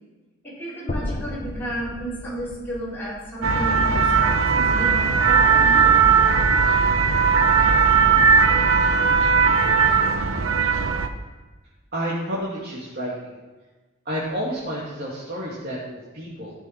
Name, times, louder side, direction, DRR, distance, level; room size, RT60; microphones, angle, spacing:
voice 1, 0.4-4.9 5.3-6.0, right 1 dB, 10° left, -9 dB, 4.2 m, -32 dB
sound 1, 0.9-5.1, left 1 dB, 40° left, 0.7 m, -35 dB
sound 2, 3.4-11.1, right 5 dB, 85° right, 0.8 m, -18 dB
voice 2, 11.9-13.4 14.0-16.5, equal, 50° right, -8 dB, 2.5 m, -30 dB
13.5 x 6.2 x 5.9 m, 1.2 s
head